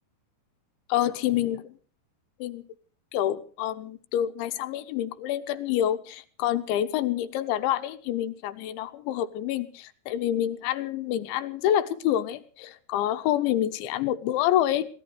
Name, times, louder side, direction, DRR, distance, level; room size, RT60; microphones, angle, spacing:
voice 1, 0.9-1.6 2.4-2.6 3.1-14.9, left 12 dB, 80° left, 11 dB, 3.3 m, -27 dB
24.5 x 17.5 x 3.2 m, 0.40 s
omnidirectional pair, 5.4 m